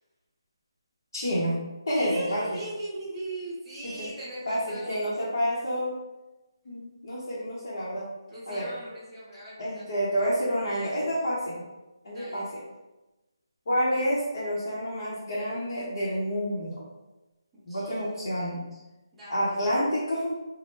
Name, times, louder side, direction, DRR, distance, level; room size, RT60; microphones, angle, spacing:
voice 1, 1.1-1.6 1.9-2.6 3.8-4.1 4.5-6.0 6.6-8.1 8.5-8.7 9.6-11.6 12.0-12.6 13.7-16.8 17.7-18.7 19.3-20.4, equal, 45° left, -8 dB, 0.7 m, -29 dB
voice 2, 1.9-5.0 8.3-9.9 12.1-12.5 17.5-18.1 19.1-19.6, right 2 dB, 5° right, -12 dB, 0.6 m, -39 dB
3.0 x 2.0 x 3.3 m, 1.1 s
hypercardioid pair, 180°, 3 cm